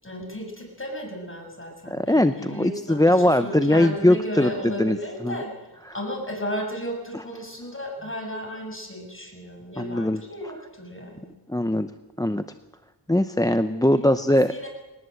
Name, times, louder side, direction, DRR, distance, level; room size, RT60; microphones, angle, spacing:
voice 1, 0.0-5.7 5.9-11.3 13.8-14.7, equal, 30° left, 1 dB, 7.3 m, -34 dB
voice 2, 1.9-5.0 5.2-5.4 9.8-10.2 11.5-11.9 12.2-12.4 13.1-14.5, left 1 dB, 10° left, 10 dB, 0.8 m, -21 dB
21.0 x 19.0 x 7.9 m, 1.1 s
wide cardioid pair, 55°, 41 cm